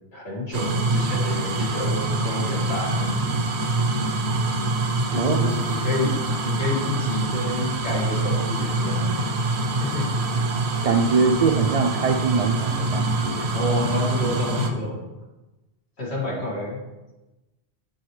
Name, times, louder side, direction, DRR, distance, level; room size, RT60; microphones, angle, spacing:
voice 1, 0.1-3.5 5.1-6.1 6.4-9.1 9.8-10.0 13.5-15.0 16.0-16.8, left 2 dB, 80° left, -4 dB, 2.2 m, -29 dB
sound 1, 0.5-14.7, right 2 dB, 90° right, 1.0 m, -25 dB
voice 2, 5.2-5.5 10.8-13.5, right 5 dB, 55° right, 4 dB, 0.4 m, -22 dB
7.1 x 6.2 x 3.2 m, 1.1 s
omnidirectional pair, 1.1 m